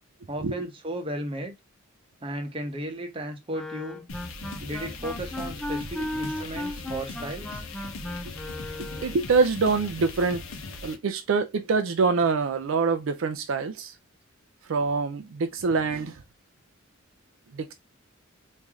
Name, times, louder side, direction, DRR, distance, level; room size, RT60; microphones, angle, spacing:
voice 1, 0.3-1.5 2.2-4.0 4.6-7.6, right 1 dB, 25° right, 0.8 m, -35 dB
Wind instrument woodwind instrument, 3.5-9.3, left 1 dB, 5° left, 0.4 m, -36 dB
sound 1, 4.1-11.0, left 3 dB, 85° left, 0.7 m, -39 dB
voice 2, 8.8-10.4 10.8-13.9 14.7-16.2 17.5-17.7, right 4 dB, 70° right, 0.4 m, -25 dB
3.1 x 2.7 x 3.5 m
head